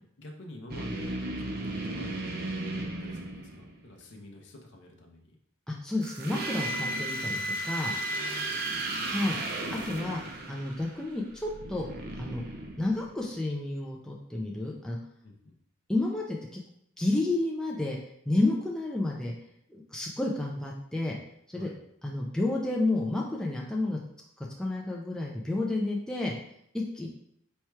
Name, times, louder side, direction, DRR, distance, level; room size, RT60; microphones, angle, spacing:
voice 1, 0.2-5.4 8.1-9.3 15.2-15.5 21.6-21.7, left 1 dB, 55° left, 1 dB, 0.6 m, -49 dB
sound 1, 0.7-4.0 6.0-13.3, right 1 dB, 45° right, 0.6 m, -35 dB
voice 2, 5.7-7.9 9.1-9.4 9.7-10.2 10.5-11.9 12.2-12.4 12.8-15.0 15.9-16.6 17.0-18.0 18.3-19.3 19.7-21.2 21.5-21.7 22.0-24.0 24.6-26.3 26.7-27.1, left 2 dB, 5° left, -3 dB, 0.4 m, -30 dB
4.3 x 2.3 x 4.5 m, 0.71 s
head